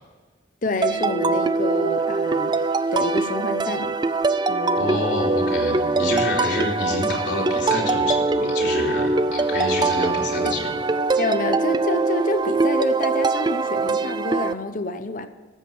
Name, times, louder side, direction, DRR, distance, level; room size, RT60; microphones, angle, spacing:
voice 1, 0.6-2.6 2.9-3.9 4.5-5.0 11.2-15.3, left 2 dB, 45° left, 10 dB, 0.8 m, -28 dB
sound 1, 0.8-14.5, right 3 dB, 25° right, 0.4 m, -22 dB
voice 2, 4.8-10.8, left 2 dB, 70° left, -3 dB, 3.2 m, -27 dB
14.0 x 7.4 x 7.0 m, 1.3 s
head